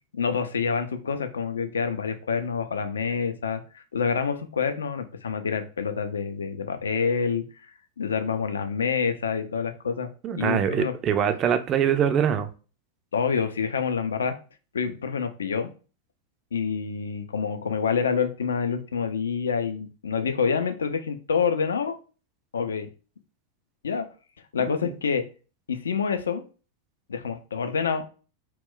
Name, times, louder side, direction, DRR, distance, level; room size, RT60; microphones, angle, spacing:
voice 1, 0.1-10.1 10.4-10.9 13.1-14.3 14.7-15.7 16.5-22.0 22.5-22.9 23.8-24.1 24.5-25.2 25.7-26.4 27.1-28.0, left 6 dB, 70° left, 0.3 m, -27 dB
voice 2, 10.2-12.5 24.8-24.9, right 8 dB, 30° right, 0.3 m, -23 dB
2.2 x 2.1 x 3.7 m
figure-of-eight pair, 90°, 0 cm